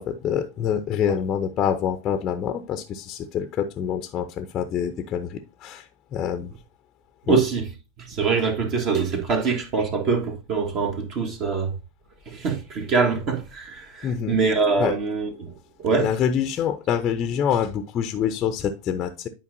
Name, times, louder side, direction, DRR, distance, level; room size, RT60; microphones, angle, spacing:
voice 1, 0.0-6.5 7.3-7.4 14.0-14.4 14.8-15.0 16.0-19.3, left 8 dB, 30° left, 0.7 m, -26 dB
voice 2, 7.3-7.6 8.1-11.7 12.3-15.5 15.8-16.1, right 5 dB, 35° right, 1.6 m, -24 dB
10.5 x 5.1 x 2.7 m
figure-of-eight pair, 90°, 0 cm